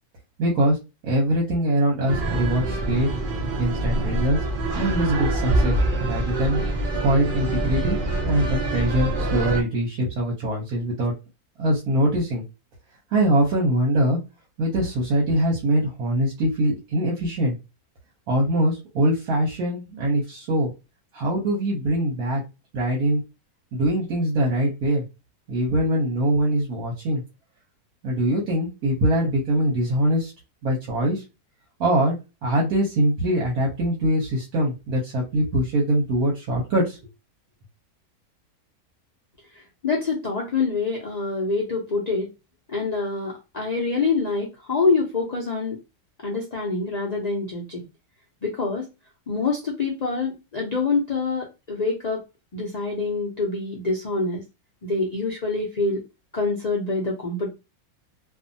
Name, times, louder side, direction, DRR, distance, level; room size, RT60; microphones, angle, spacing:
voice 1, 0.4-0.8 1.0-3.1 3.6-4.4 4.8-6.6 7.0-8.0 8.2-11.1 11.6-12.4 13.1-14.2 14.6-17.6 18.3-20.7 21.1-22.4 22.7-23.2 23.7-25.0 25.5-27.2 28.0-30.3 30.6-31.2 31.8-32.2 32.4-37.0, right 1 dB, 75° right, -3 dB, 1.3 m, -23 dB
sound 1, 2.1-9.6, right 2 dB, 55° right, 0.5 m, -25 dB
voice 2, 39.8-42.3 42.7-45.8 46.2-47.8 48.4-48.9 49.3-52.2 52.5-54.4 54.8-56.0 56.3-57.5, left 3 dB, 65° left, -3 dB, 0.4 m, -25 dB
2.7 x 2.4 x 2.6 m, 0.26 s
omnidirectional pair, 1.6 m